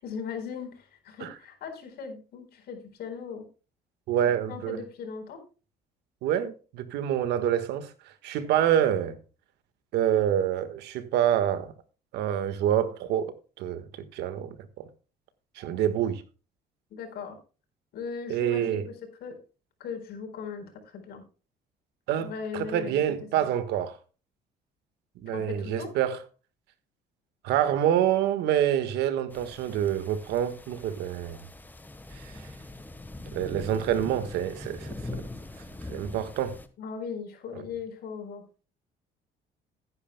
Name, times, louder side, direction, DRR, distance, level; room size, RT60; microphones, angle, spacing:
voice 1, 0.0-3.5 4.5-5.4 8.6-8.9 16.9-17.4 17.9-19.4 19.8-21.2 22.2-23.0 23.4-23.5 25.3-25.9 36.8-38.7, left 6 dB, 70° left, 4.3 m, -38 dB
voice 2, 4.1-4.8 6.2-7.9 8.2-9.1 9.9-11.7 12.1-13.8 14.1-14.9 15.6-16.2 18.3-18.8 22.1-24.0 25.2-26.2 27.4-31.4 32.1-32.5 33.3-35.3 35.9-36.6, right 10 dB, 85° right, 1.5 m, -27 dB
sound 1, 29.3-36.7, left 2 dB, 10° left, 1.2 m, -42 dB
16.0 x 9.8 x 2.2 m
cardioid pair, 110°, 17 cm